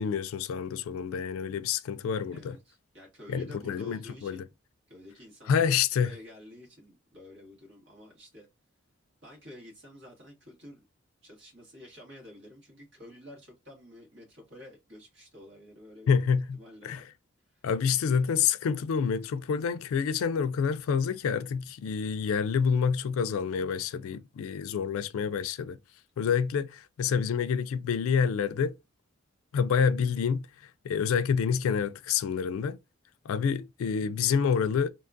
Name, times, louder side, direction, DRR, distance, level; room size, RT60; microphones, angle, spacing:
voice 1, 0.0-2.6 3.3-4.4 5.5-6.1 16.1-16.6 16.8-17.0 17.6-25.8 26.2-28.7 29.5-32.8 33.3-34.9, left 6 dB, 80° left, 0.3 m, -28 dB
voice 2, 2.3-4.5 4.9-8.5 9.2-10.8 11.2-16.1 16.5-17.0 17.4-18.3, left 1 dB, 60° right, 1.5 m, -50 dB
2.8 x 2.3 x 2.5 m
head